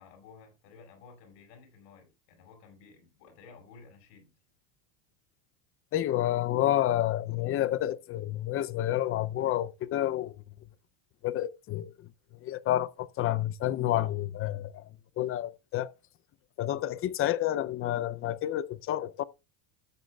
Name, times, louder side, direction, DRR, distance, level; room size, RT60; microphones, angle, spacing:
voice 1, 0.0-4.3, left 5 dB, 75° left, 5.4 m, -54 dB
voice 2, 5.9-10.3 11.2-11.9 12.4-14.9 15.2-15.9 16.6-19.2, left 13 dB, 30° left, 0.4 m, -29 dB
13.0 x 9.2 x 2.2 m
supercardioid pair, 125°, 50 cm